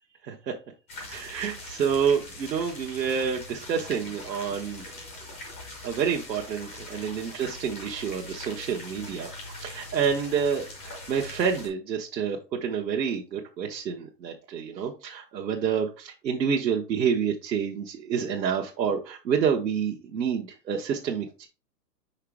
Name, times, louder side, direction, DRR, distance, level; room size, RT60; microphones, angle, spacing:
sound 1, 0.9-11.7, left 2 dB, 10° left, 0.4 m, -42 dB
voice 1, 1.1-4.9 5.8-21.5, right 7 dB, 80° right, -1 dB, 1.3 m, -28 dB
5.7 x 5.0 x 3.5 m, 0.32 s
hypercardioid pair, 150°, 50 cm